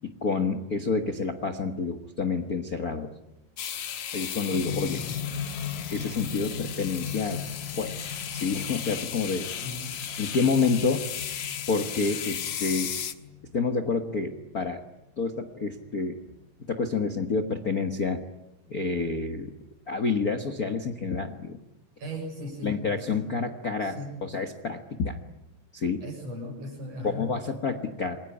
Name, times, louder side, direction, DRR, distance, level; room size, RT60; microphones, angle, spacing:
voice 1, 0.0-3.1 4.1-5.0 5.9-7.4 7.8-8.0 8.3-9.5 10.2-11.1 11.7-12.9 13.5-14.8 15.2-16.2 16.7-18.2 18.7-19.6 19.9-21.6 22.6-25.2 25.7-26.0 27.0-28.2, left 4 dB, 40° left, 9 dB, 1.4 m, -28 dB
sound 1, 3.6-13.1, left 9 dB, 60° left, 2.3 m, -35 dB
sound 2, 4.5-16.7 17.6-17.7, left 6 dB, 75° left, 2.6 m, -39 dB
voice 2, 4.7-5.2 9.6-9.9 22.0-23.3 23.8-24.2 26.0-27.3, left 1 dB, 60° right, 3 dB, 8.1 m, -38 dB
28.5 x 21.5 x 9.8 m, 0.95 s
omnidirectional pair, 3.3 m